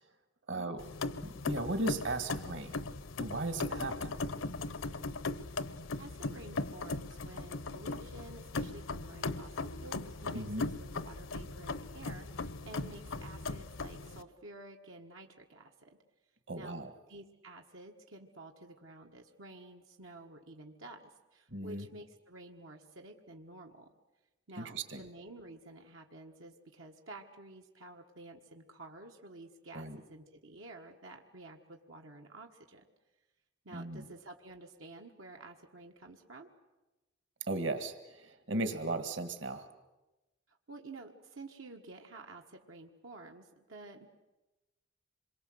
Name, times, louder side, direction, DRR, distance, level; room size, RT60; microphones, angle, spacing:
voice 1, 0.5-0.8 1.5-2.8 3.2-4.1 10.3-10.7 16.5-16.9 21.5-21.9 24.6-25.0 29.7-30.0 33.7-34.0 37.5-39.7, right 2 dB, 65° right, 9 dB, 1.8 m, -36 dB
sound 1, 0.8-14.2, left 3 dB, 80° left, 0.9 m, -39 dB
voice 2, 5.7-16.0 16.5-16.8 17.1-23.9 24.5-32.8 33.6-36.5 40.7-44.1, right 2 dB, 85° right, 2 dB, 1.6 m, -51 dB
26.5 x 22.5 x 7.9 m, 1.1 s
head